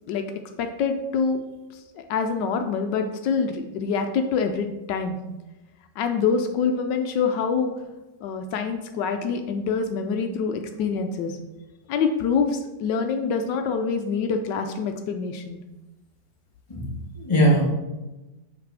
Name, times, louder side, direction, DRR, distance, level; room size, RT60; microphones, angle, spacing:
voice 1, 0.6-1.4 1.9-5.2 6.0-7.7 8.2-11.4 11.9-15.6, left 5 dB, 80° left, 6 dB, 1.2 m, -25 dB
voice 2, 16.7-17.7, right 1 dB, 20° left, -3 dB, 1.2 m, -21 dB
7.5 x 3.3 x 4.7 m, 1.0 s
omnidirectional pair, 1.9 m